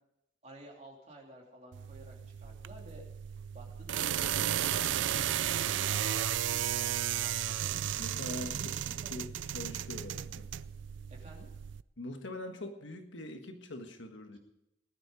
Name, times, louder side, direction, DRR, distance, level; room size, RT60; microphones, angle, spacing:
voice 1, 0.4-2.1 2.4-3.0 3.5-7.7 8.3-9.1 11.1-11.5, right 1 dB, 35° right, -1 dB, 3.0 m, -52 dB
sound 1, 1.7-11.8, right 10 dB, 70° right, 0.4 m, -34 dB
voice 2, 8.0-9.2 9.5-10.5 12.0-14.4, left 1 dB, 70° left, 6 dB, 1.6 m, -43 dB
19.5 x 9.8 x 5.1 m, 0.88 s
head